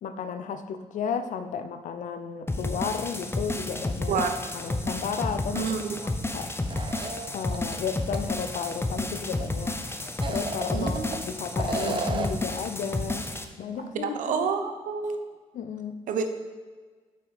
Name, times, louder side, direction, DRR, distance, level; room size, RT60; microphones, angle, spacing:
voice 1, 0.0-4.3 4.5-5.7 6.0-6.5 7.3-9.8 10.3-13.3 13.6-14.5 15.5-16.0, left 6 dB, 70° left, 10 dB, 0.7 m, -33 dB
sound 1, 2.5-13.4, left 2 dB, 20° left, 0.8 m, -31 dB
voice 2, 5.5-6.1 10.7-11.2 13.9-15.2 16.1-16.3, right 6 dB, 80° right, 7 dB, 0.8 m, -29 dB
sound 2, 6.7-7.8 8.1-8.2 10.1-11.2 11.6-12.5, right 4 dB, 40° right, 0.8 m, -33 dB
7.5 x 5.5 x 5.2 m, 1.5 s
supercardioid pair, 60°, 13 cm